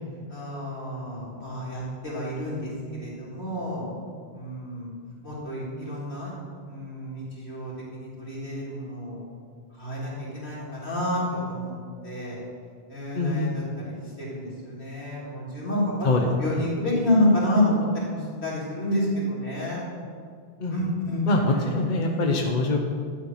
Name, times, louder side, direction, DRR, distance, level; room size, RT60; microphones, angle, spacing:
voice 1, 0.3-3.9 4.3-4.9 5.2-6.4 6.7-9.2 9.8-11.7 12.0-12.4 12.9-19.8 20.7-21.7, left 1 dB, 85° left, -6 dB, 4.0 m, -29 dB
voice 2, 13.1-13.5 16.0-16.7 20.6-20.8 21.3-22.8, left 2 dB, 50° left, 2 dB, 1.1 m, -24 dB
12.0 x 9.0 x 5.7 m, 2.1 s
omnidirectional pair, 1.1 m